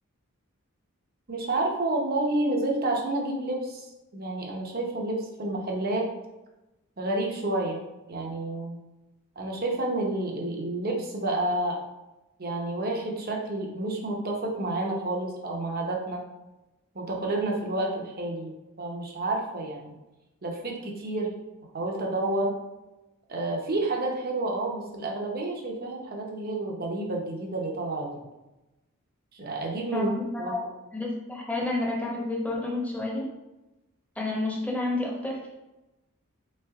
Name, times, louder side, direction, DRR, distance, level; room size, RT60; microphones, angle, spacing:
voice 1, 1.3-3.9 4.1-6.1 7.0-7.8 8.1-8.8 9.4-11.8 12.4-16.2 16.9-19.9 20.4-21.3 21.7-22.5 23.3-28.1 29.3-30.1 30.4-30.6, right 2 dB, 45° right, 0 dB, 0.8 m, -29 dB
voice 2, 29.9-30.6 30.9-33.3 34.2-35.5, left 2 dB, 5° left, -3 dB, 0.9 m, -30 dB
3.8 x 3.4 x 3.5 m, 1.0 s
head